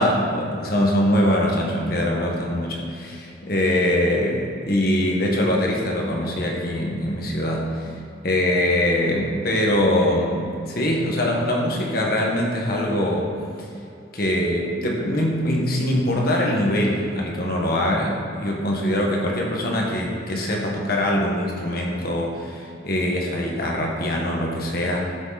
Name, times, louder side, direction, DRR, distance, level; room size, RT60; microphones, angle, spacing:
voice 1, 0.0-7.9 8.2-13.3 14.1-25.1, left 1 dB, 55° left, -1 dB, 1.7 m, -23 dB
12.5 x 6.5 x 4.3 m, 2.6 s
head